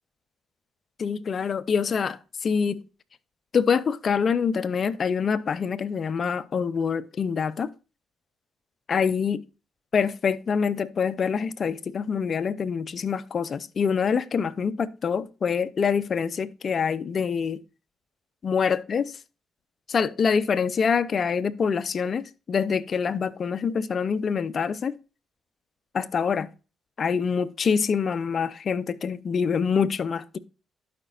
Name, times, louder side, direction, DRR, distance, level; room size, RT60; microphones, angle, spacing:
voice 1, 1.0-2.8 3.5-7.7 8.9-9.4 9.9-17.6 18.4-19.0 19.9-25.0 25.9-26.5 27.0-30.4, left 6 dB, 45° left, 0.5 m, -25 dB
12.0 x 5.0 x 2.4 m
cardioid pair, 90°, 0 cm